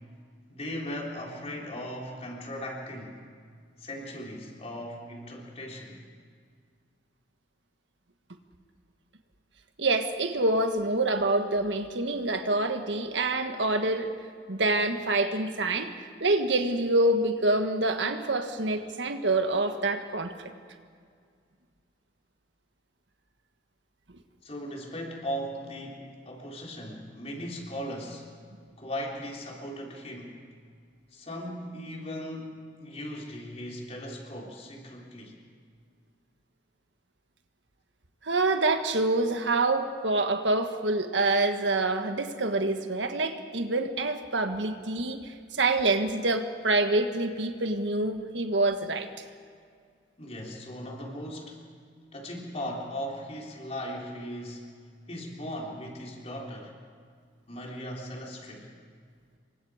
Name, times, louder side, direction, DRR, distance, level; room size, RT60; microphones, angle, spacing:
voice 1, 0.5-3.2 3.8-6.1 24.4-28.3 28.8-30.4 31.1-35.4 50.2-51.6 52.1-54.7 55.1-56.8 57.5-58.7, equal, 35° left, -1 dB, 3.8 m, -38 dB
voice 2, 9.8-14.1 14.5-15.9 16.2-20.5 38.2-49.1, right 2 dB, 85° right, 7 dB, 1.6 m, -26 dB
27.5 x 24.0 x 5.0 m, 2.1 s
head